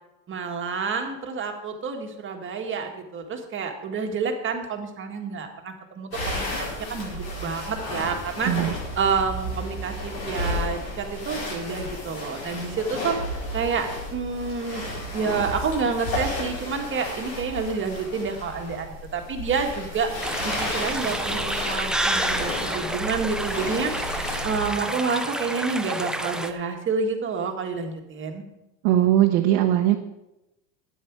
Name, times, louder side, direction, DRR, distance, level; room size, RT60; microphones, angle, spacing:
voice 1, 0.3-13.2 13.5-14.8 15.1-20.1 20.4-23.9 24.4-28.4, right 5 dB, 30° right, 4 dB, 1.7 m, -29 dB
sound 1, 6.1-24.7, left 1 dB, 90° left, 5.2 m, -33 dB
sound 2, 20.2-26.5, right 1 dB, ahead, 0.5 m, -29 dB
voice 2, 28.8-30.0, right 12 dB, 70° right, 2 dB, 1.1 m, -19 dB
12.0 x 9.6 x 4.8 m, 0.93 s
supercardioid pair, 125°, 41 cm